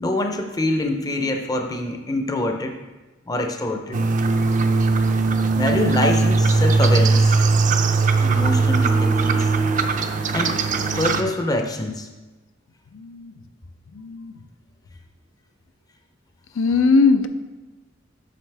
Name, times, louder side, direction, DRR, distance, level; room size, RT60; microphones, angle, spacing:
voice 1, 0.0-2.8 3.3-4.0 5.6-7.3 8.2-9.5 10.3-10.6 11.0-12.1, left 1 dB, 20° left, 4 dB, 0.5 m, -25 dB
sound 1, 3.9-11.2, right 3 dB, 40° right, 0.5 m, -19 dB
voice 2, 12.9-13.4 13.9-14.4 16.6-17.3, left 4 dB, 90° left, 9 dB, 0.5 m, -20 dB
7.7 x 6.2 x 3.3 m, 1.2 s
head